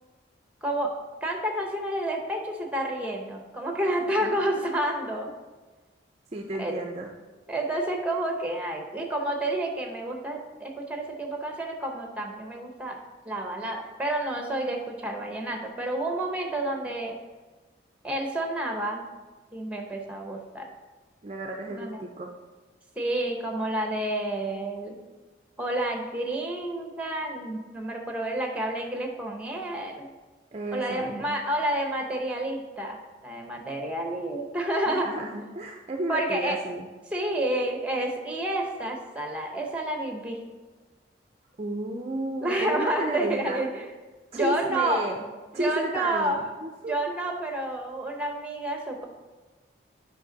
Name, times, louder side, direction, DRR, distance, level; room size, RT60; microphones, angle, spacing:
voice 1, 0.6-0.9 1.2-5.3 6.6-6.8 7.5-17.1 18.0-19.1 19.5-20.7 21.7-22.0 23.0-25.0 25.6-30.1 30.7-35.1 36.1-36.6 37.1-40.4 42.4-43.8 44.3-45.0 45.5-46.4 46.9-49.0, right 1 dB, 5° right, 2 dB, 0.8 m, -29 dB
voice 2, 3.9-4.7 6.3-7.1 21.2-22.3 30.5-31.4 34.9-36.9 41.6-43.6 44.3-45.2 45.5-47.0, right 2 dB, 30° right, 2 dB, 0.4 m, -33 dB
7.9 x 5.2 x 3.9 m, 1.3 s
head